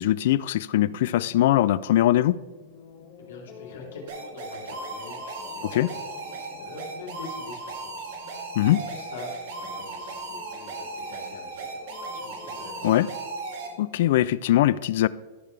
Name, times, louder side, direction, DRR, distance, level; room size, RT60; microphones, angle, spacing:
voice 1, 0.0-2.4 5.6-5.9 8.6-8.8 12.8-13.1 13.8-15.1, left 13 dB, 60° left, 0.3 m, -21 dB
sound 1, 0.8-14.4, left 4 dB, 35° left, 2.4 m, -49 dB
voice 2, 3.2-13.0, left 3 dB, 85° left, 3.0 m, -44 dB
sound 2, 4.1-13.7, right 3 dB, 65° right, 2.4 m, -37 dB
14.0 x 6.6 x 3.3 m
supercardioid pair, 150°, 0 cm